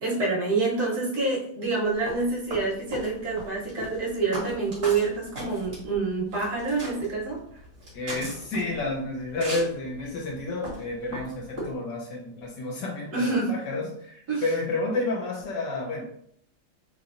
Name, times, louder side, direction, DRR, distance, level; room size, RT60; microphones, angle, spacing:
voice 1, 0.0-7.4 13.1-13.5 14.3-14.4, right 3 dB, 55° right, -4 dB, 1.4 m, -27 dB
sound 1, 1.9-11.7, right 1 dB, 35° right, 1.7 m, -38 dB
voice 2, 7.9-16.0, left 2 dB, 65° left, -2 dB, 1.5 m, -30 dB
4.0 x 3.2 x 2.5 m, 0.65 s
omnidirectional pair, 2.2 m